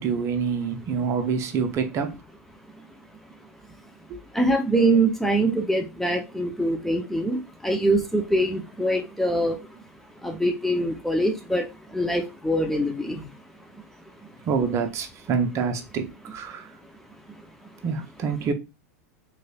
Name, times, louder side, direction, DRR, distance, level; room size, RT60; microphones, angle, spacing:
voice 1, 0.0-2.2 4.1-4.2 14.5-16.7 17.8-18.5, right 5 dB, 35° right, 0.7 m, -26 dB
voice 2, 4.3-9.6 10.2-11.7 11.9-13.3, right 1 dB, 5° left, 0.5 m, -23 dB
3.7 x 3.2 x 2.3 m
hypercardioid pair, 90°, 8 cm